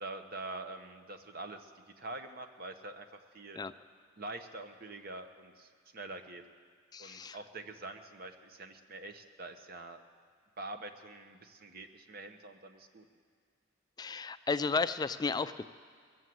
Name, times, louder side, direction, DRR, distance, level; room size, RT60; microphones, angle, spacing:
voice 1, 0.0-3.1 3.3-3.6 4.2-6.4 7.0-10.0 10.6-13.1, right 2 dB, 50° right, 6 dB, 1.0 m, -45 dB
voice 2, 6.9-7.4 14.0-15.6, left 4 dB, 20° left, 12 dB, 0.3 m, -33 dB
20.5 x 7.2 x 7.8 m, 2.1 s
head